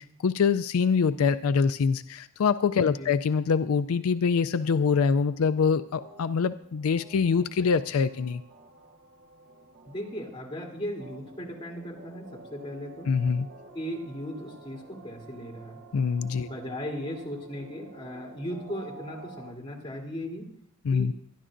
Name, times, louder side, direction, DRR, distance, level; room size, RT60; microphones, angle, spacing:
voice 1, 0.0-8.4 13.1-13.5 15.9-16.5 20.8-21.1, left 5 dB, 85° left, 13 dB, 0.4 m, -24 dB
sound 1, 4.6-19.5, right 3 dB, 55° right, 1.1 m, -50 dB
voice 2, 9.9-13.1 13.7-15.8 16.4-20.5 20.9-21.1, equal, 25° left, -1 dB, 3.2 m, -37 dB
25.0 x 11.0 x 2.6 m, 0.66 s
head